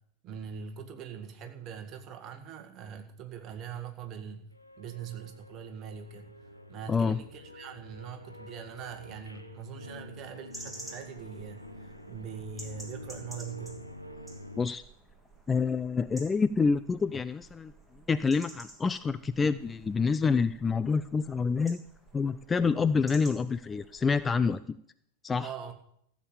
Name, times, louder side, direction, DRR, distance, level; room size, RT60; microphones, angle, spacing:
voice 1, 0.2-4.5 4.8-6.4 6.7-13.8 25.4-25.7, right 7 dB, 35° right, 6 dB, 1.8 m, -42 dB
sound 1, 4.5-14.6, left 1 dB, 90° left, 1.0 m, -47 dB
voice 2, 6.9-7.2 14.6-14.8 15.5-17.7 18.1-21.8 22.1-24.8 25.2-25.5, left 5 dB, 15° left, 13 dB, 0.4 m, -27 dB
sound 2, 10.5-24.6, right 1 dB, ahead, 3.0 m, -51 dB
15.0 x 7.4 x 7.2 m, 0.71 s
figure-of-eight pair, 90°, 0 cm